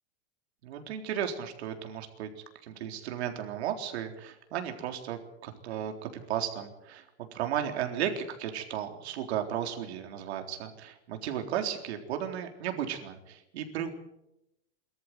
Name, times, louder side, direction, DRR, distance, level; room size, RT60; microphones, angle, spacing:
voice 1, 0.6-2.3 2.6-13.9, right 9 dB, 70° right, 5 dB, 3.9 m, -35 dB
23.5 x 14.0 x 9.6 m, 0.85 s
supercardioid pair, 180°, 34 cm